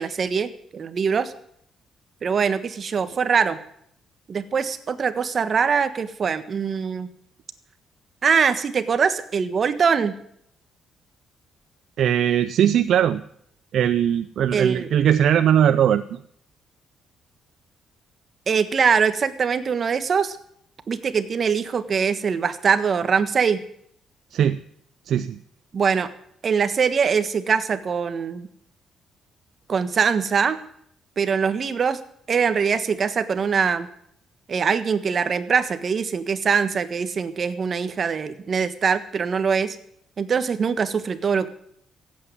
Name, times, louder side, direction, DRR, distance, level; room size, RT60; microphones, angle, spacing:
voice 1, 0.0-1.3 2.2-3.6 4.3-7.1 8.2-10.1 14.5-14.9 18.5-20.4 20.9-23.6 25.7-26.1 26.4-28.5 29.7-30.6 31.2-32.0 32.3-33.9 34.5-39.8 40.2-41.5, right 6 dB, 45° right, 11 dB, 1.4 m, -22 dB
voice 2, 12.0-13.2 13.7-16.0 24.3-24.6 25.1-25.4, right 9 dB, 70° right, 11 dB, 0.6 m, -19 dB
15.5 x 8.6 x 9.5 m, 0.70 s
cardioid pair, 90°, 0 cm